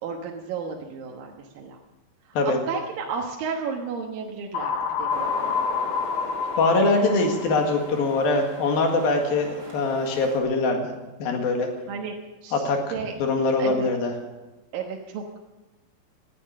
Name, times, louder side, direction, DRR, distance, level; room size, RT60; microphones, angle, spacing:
voice 1, 0.0-1.8 2.2-5.5 11.9-12.1 12.4-12.7 12.9-13.2 13.6-13.9 14.7-15.4, right 5 dB, 75° right, 0 dB, 3.0 m, -33 dB
sound 1, 4.5-8.4, left 6 dB, 70° left, 2.2 m, -28 dB
sound 2, 5.1-10.4, right 2 dB, 25° right, 4.0 m, -39 dB
voice 2, 6.6-10.9 11.2-11.7 12.5-12.8 13.2-14.1, left 3 dB, 85° left, 3 dB, 3.8 m, -23 dB
19.0 x 12.0 x 6.5 m, 1.1 s
omnidirectional pair, 4.1 m